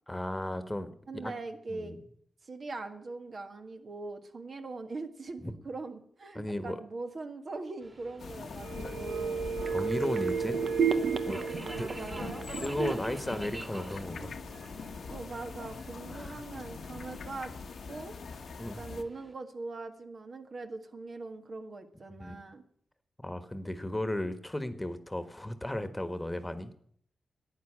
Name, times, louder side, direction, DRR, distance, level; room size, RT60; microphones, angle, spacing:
voice 1, 0.1-1.3 1.7-2.0 6.3-6.8 8.8-9.0 9.7-10.6 11.2-11.4 11.8-11.9 12.6-14.3 16.1-16.4 18.6-18.8 22.2-22.4 23.2-26.7, left 1 dB, 15° left, 11 dB, 1.4 m, -35 dB
voice 2, 1.1-2.0 2.4-9.5 11.3-12.3 14.2-14.3 15.1-17.5 17.9-18.1 18.8-22.6, right 3 dB, 55° right, 6 dB, 1.6 m, -41 dB
Subway metro underground, 7.8-19.3, right 1 dB, 30° right, 2.5 m, -49 dB
sound 1, 8.2-19.0, left 5 dB, 75° left, 1.1 m, -43 dB
sound 2, 8.6-14.3 14.6-14.7, right 6 dB, 75° right, 0.9 m, -33 dB
11.5 x 9.2 x 8.7 m, 0.63 s
cardioid pair, 65°, 0 cm